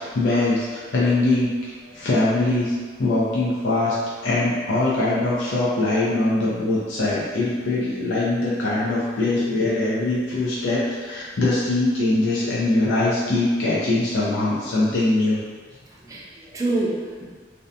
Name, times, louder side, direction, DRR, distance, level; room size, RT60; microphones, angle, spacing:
voice 1, 0.0-2.7 3.0-4.0 4.2-15.4, left 2 dB, 80° left, -7 dB, 0.5 m, -22 dB
voice 2, 15.9-17.2, right 2 dB, 20° right, -4 dB, 0.4 m, -28 dB
2.6 x 2.1 x 2.5 m, 1.5 s
head